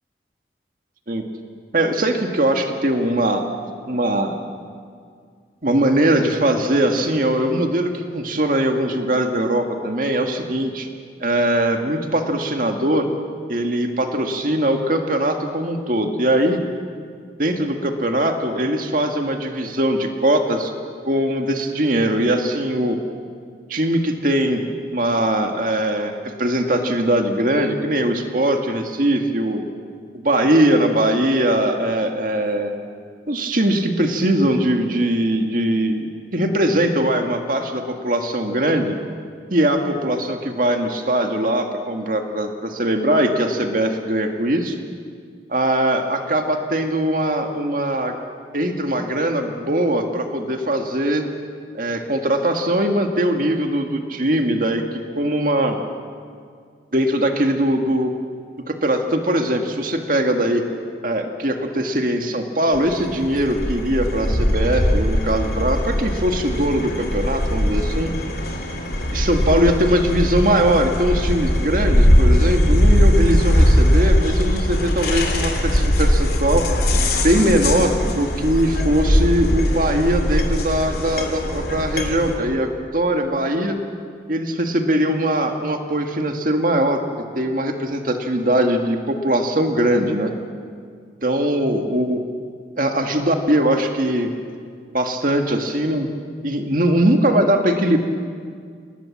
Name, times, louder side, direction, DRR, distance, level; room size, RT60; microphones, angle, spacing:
voice 1, 1.7-3.5 3.9-4.3 5.6-10.9 11.2-13.1 13.5-16.6 17.4-20.7 21.1-23.0 23.7-24.6 24.9-29.7 30.1-32.7 33.3-39.0 39.5-44.8 45.5-48.2 48.5-51.3 51.7-54.8 55.2-55.8 56.9-58.1 58.7-60.6 61.0-68.1 69.1-76.7 77.2-83.8 84.3-87.0 87.4-90.3 91.2-92.2 92.8-94.3 94.9-96.1 96.4-98.0, right 1 dB, 50° right, 4 dB, 1.9 m, -21 dB
sound 1, 62.7-82.4, equal, 55° left, 3.3 m, -20 dB
28.0 x 19.5 x 7.3 m, 2.1 s
head